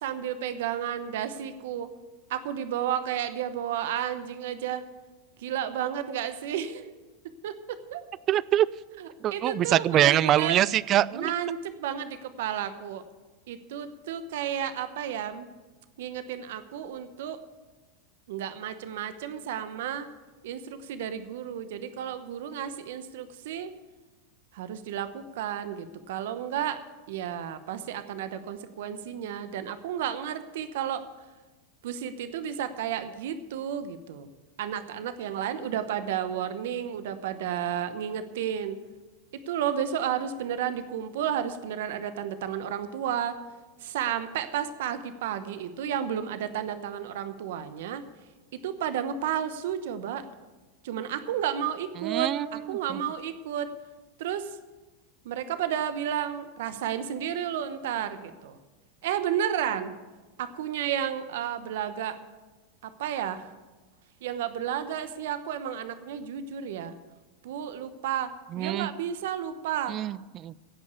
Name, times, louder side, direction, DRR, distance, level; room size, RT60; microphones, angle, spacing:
voice 1, 0.0-1.9 2.3-4.8 5.4-6.9 7.4-8.0 9.0-10.6 11.1-13.0 13.5-15.5 16.0-17.4 18.3-20.1 20.4-23.7 24.5-26.8 27.1-31.0 31.8-34.3 34.6-38.8 39.5-43.4 43.8-48.0 48.6-50.3 50.8-53.7 54.2-54.6 55.2-58.6 59.0-59.9 60.4-62.2 63.0-63.4 64.2-66.9 67.4-68.3 68.6-69.9, right 9 dB, 75° right, 11 dB, 0.9 m, -32 dB
voice 2, 8.3-8.7 9.2-11.3 52.0-52.5 52.9-53.0 68.5-68.9 69.9-70.5, right 12 dB, 40° right, 21 dB, 0.4 m, -24 dB
16.5 x 5.5 x 8.2 m, 1.2 s
hypercardioid pair, 105°, 0 cm